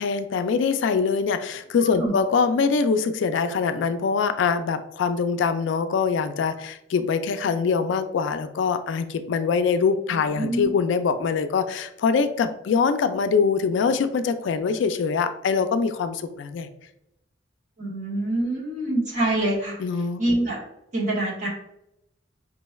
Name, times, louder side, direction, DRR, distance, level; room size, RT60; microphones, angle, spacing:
voice 1, 0.0-16.7 19.8-20.2, left 5 dB, 70° left, 10 dB, 0.3 m, -23 dB
voice 2, 10.1-10.7 17.8-19.8 20.2-20.6 20.9-21.5, right 1 dB, 40° right, -5 dB, 1.5 m, -25 dB
5.1 x 3.1 x 2.3 m, 0.83 s
head